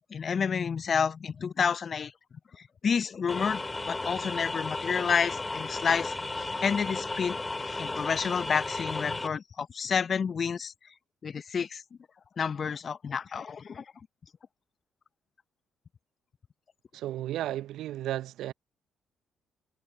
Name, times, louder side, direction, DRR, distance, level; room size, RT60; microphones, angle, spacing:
voice 1, 0.0-2.1 2.8-3.6 3.9-10.7 11.2-11.8 12.4-13.8, left 6 dB, 45° left, 0.9 m, -30 dB
sound 1, 3.3-9.3, left 2 dB, 20° left, 2.8 m, -34 dB
voice 2, 16.9-18.5, right 13 dB, 65° right, 0.8 m, -33 dB
hypercardioid pair, 45°, 0 cm